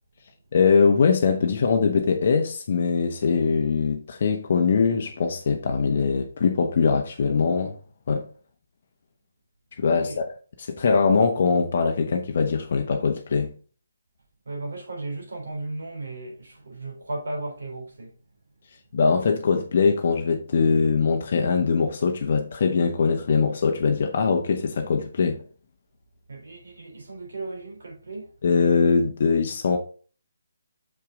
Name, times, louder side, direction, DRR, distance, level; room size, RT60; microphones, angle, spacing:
voice 1, 0.5-7.8 8.1-8.2 9.8-10.2 10.6-13.5 18.9-25.4 28.4-29.8, left 5 dB, 50° left, 1.1 m, -22 dB
voice 2, 14.5-18.1 26.3-28.3, right 2 dB, 70° right, 3.7 m, -35 dB
6.7 x 5.6 x 3.8 m
figure-of-eight pair, 155°, 0 cm